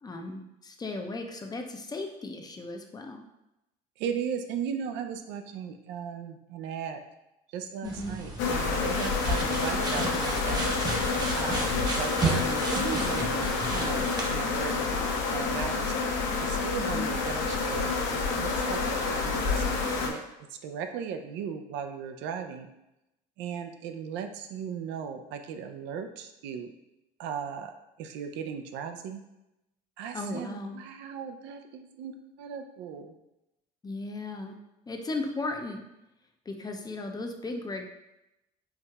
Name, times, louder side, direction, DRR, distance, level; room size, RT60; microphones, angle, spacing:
voice 1, 0.0-3.2 7.8-8.2 16.8-17.1 30.1-30.8 33.8-34.6 34.9-35.8 36.5-37.9, left 2 dB, 20° left, 3 dB, 0.5 m, -36 dB
voice 2, 4.0-7.0 7.5-10.6 11.4-14.8 15.3-15.9 16.4-20.2 20.5-22.7 23.4-26.7 27.2-27.7 28.0-29.2 30.0-33.1, right 7 dB, 70° right, 6 dB, 0.4 m, -37 dB
sound 1, 7.8-14.3, right 2 dB, 20° right, 0.8 m, -33 dB
sound 2, 8.4-20.1, left 4 dB, 70° left, 0.7 m, -28 dB
4.6 x 2.7 x 2.3 m, 0.90 s
supercardioid pair, 80°, 19 cm